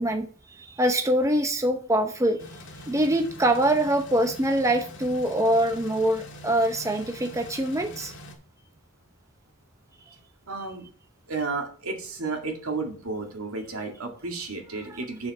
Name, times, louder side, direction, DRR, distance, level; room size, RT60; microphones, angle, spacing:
voice 1, 0.0-2.4 2.9-8.1, right 1 dB, 15° right, 5 dB, 0.7 m, -24 dB
sound 1, 2.4-8.3, left 1 dB, 55° left, 1.9 m, -44 dB
voice 2, 10.5-10.9 11.3-15.3, right 3 dB, 75° right, 3 dB, 2.1 m, -32 dB
7.5 x 7.0 x 4.2 m, 0.43 s
head